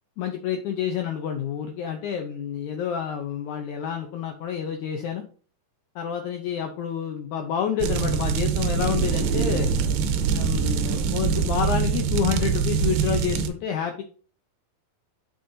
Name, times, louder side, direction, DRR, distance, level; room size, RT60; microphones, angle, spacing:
voice 1, 0.2-5.2 5.9-9.7 10.3-14.0, left 8 dB, 80° left, 4 dB, 1.7 m, -28 dB
sound 1, 7.8-13.5, right 6 dB, 90° right, 2.6 m, -24 dB
7.4 x 7.0 x 2.6 m, 0.41 s
omnidirectional pair, 4.2 m